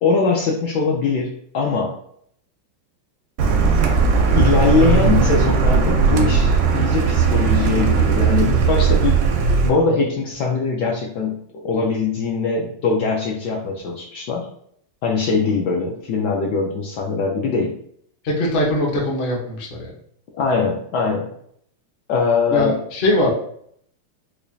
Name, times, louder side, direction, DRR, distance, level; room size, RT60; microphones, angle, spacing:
voice 1, 0.0-1.9 4.4-9.2 9.6-14.5 15.0-17.8 20.3-21.3 22.1-22.8, left 4 dB, 75° left, -1 dB, 1.0 m, -21 dB
Car, 3.4-9.7, right 5 dB, 80° right, 1.4 m, -17 dB
voice 2, 18.2-19.9 22.5-23.3, left 1 dB, 55° left, -2 dB, 0.5 m, -21 dB
4.8 x 2.4 x 2.6 m, 0.66 s
omnidirectional pair, 2.2 m